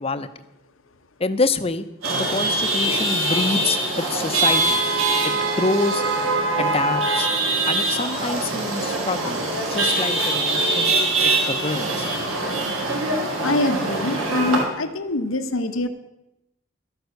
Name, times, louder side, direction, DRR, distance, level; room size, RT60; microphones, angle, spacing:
voice 1, 1.2-1.9 2.3-6.0 6.6-7.3 7.7-9.4 9.7-11.0 11.2-12.1, left 3 dB, 30° left, 11 dB, 0.7 m, -26 dB
Chatter / Vehicle horn car horn honking / Traffic noise roadway noise, 2.0-14.6, right 2 dB, 90° right, 3.2 m, -23 dB
voice 2, 13.0-15.9, left 2 dB, 80° left, 8 dB, 1.0 m, -25 dB
12.5 x 9.4 x 6.5 m, 0.90 s
head